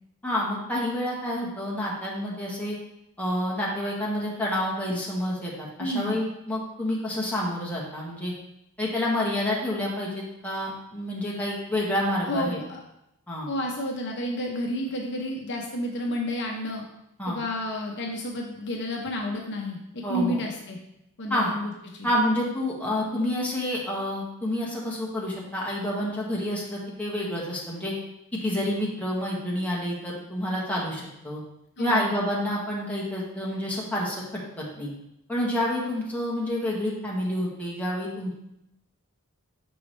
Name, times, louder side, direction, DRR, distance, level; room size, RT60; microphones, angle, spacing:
voice 1, 0.2-2.8 3.2-8.3 8.8-12.6 13.3-13.5 17.2-17.4 20.0-20.4 21.3-21.5 22.0-27.9 28.4-31.4 31.8-34.9 35.3-38.3, left 1 dB, 5° left, -5 dB, 1.2 m, -28 dB
voice 2, 5.8-6.2 12.3-12.8 13.5-16.8 17.3-20.8 21.2-22.1 31.8-32.1, left 1 dB, 50° left, 0 dB, 0.8 m, -31 dB
6.1 x 4.7 x 3.3 m, 0.84 s
head